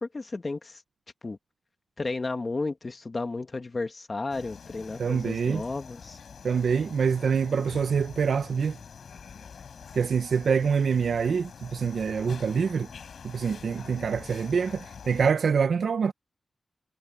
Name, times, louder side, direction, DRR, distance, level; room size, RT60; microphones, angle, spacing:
voice 1, 0.0-0.8 1.2-1.4 2.0-6.2, left 3 dB, 30° left, 1.6 m, -33 dB
sound 1, 4.3-15.3, left 6 dB, 90° left, 6.0 m, -45 dB
voice 2, 5.0-5.6 6.4-8.8 9.9-12.9 13.2-16.1, right 6 dB, 90° right, 0.6 m, -25 dB
wide cardioid pair, 165°, 0 cm